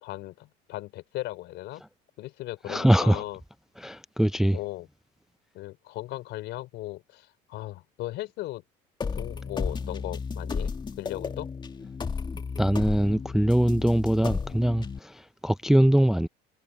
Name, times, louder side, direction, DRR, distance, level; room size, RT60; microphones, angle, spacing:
voice 1, 0.0-1.8 2.2-3.4 4.5-4.9 5.5-8.6 9.1-11.5, left 16 dB, 70° left, 3.7 m, -37 dB
voice 2, 2.7-3.2 3.8-4.6 12.3-16.3, right 1 dB, ahead, 0.4 m, -23 dB
sound 1, 9.0-15.0, left 5 dB, 25° left, 2.1 m, -33 dB
cardioid pair, 125°, 19 cm